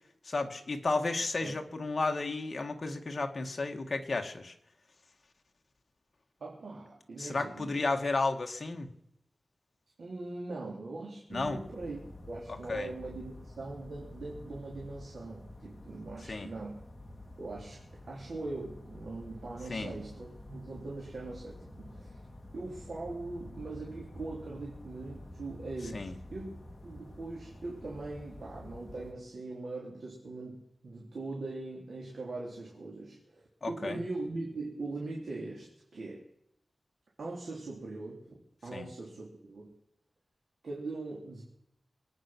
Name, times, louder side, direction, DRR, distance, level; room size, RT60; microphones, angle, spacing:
voice 1, 0.3-4.5 7.2-8.9 11.3-11.6 12.7-12.9 16.3-16.5 19.7-19.9 25.9-26.1 33.6-34.0 38.7-38.9, left 3 dB, 45° left, 3 dB, 1.8 m, -33 dB
voice 2, 6.4-7.7 10.0-16.8 17.4-22.2 22.5-36.3 37.2-39.7 40.6-41.4, right 2 dB, 75° right, -3 dB, 3.6 m, -41 dB
sound 1, 11.3-29.1, left 1 dB, 25° left, 2.3 m, -49 dB
24.5 x 9.4 x 6.1 m, 0.77 s
wide cardioid pair, 115°, 0 cm